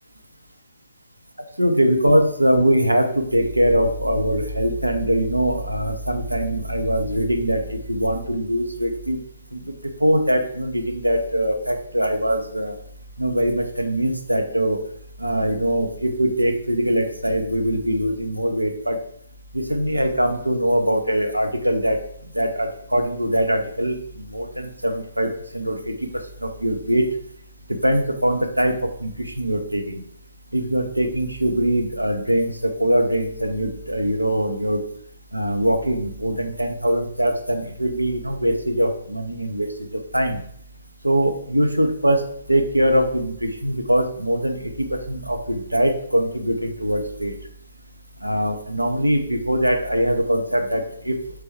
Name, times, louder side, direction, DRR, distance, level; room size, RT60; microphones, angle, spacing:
voice 1, 1.6-9.2 9.5-9.7 10.0-12.7 13.2-14.9 15.2-19.0 19.5-22.0 22.3-25.9 26.4-27.1 27.7-30.0 30.5-34.8 35.3-40.4 41.0-47.3 48.2-51.2, equal, 85° right, 5 dB, 0.6 m, -22 dB
3.4 x 3.3 x 4.5 m, 0.66 s
figure-of-eight pair, 130°, 0 cm